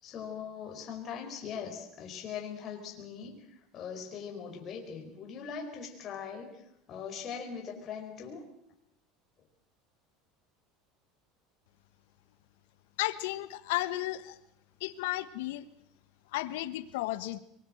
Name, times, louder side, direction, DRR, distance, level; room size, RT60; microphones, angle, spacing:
voice 1, 0.0-6.6 6.9-8.5, left 6 dB, 45° left, 2 dB, 5.0 m, -41 dB
voice 2, 13.0-14.4 14.8-15.7 16.3-17.4, left 16 dB, 80° left, 13 dB, 1.4 m, -33 dB
23.5 x 21.0 x 7.7 m, 0.76 s
supercardioid pair, 105°, 0 cm